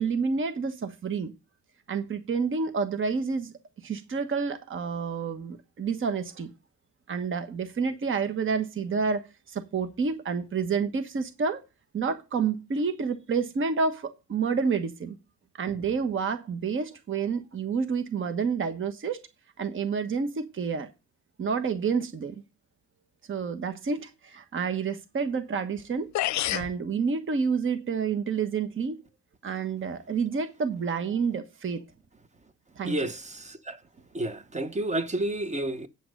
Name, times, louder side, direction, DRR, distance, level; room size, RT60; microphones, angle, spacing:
voice 1, 0.0-1.3 1.9-6.5 7.1-9.2 9.5-11.6 11.9-15.2 15.6-19.2 19.6-20.9 21.4-22.4 23.3-26.1 26.5-29.0 29.4-31.8 32.8-33.1, right 5 dB, 40° right, 1.2 m, -29 dB
sound 1, 25.8-25.9 26.1-26.7, left 14 dB, 65° left, 0.6 m, -27 dB
voice 2, 32.8-33.8 34.1-35.9, right 1 dB, 25° right, 1.1 m, -30 dB
9.0 x 6.0 x 6.5 m
cardioid pair, 90°, 30 cm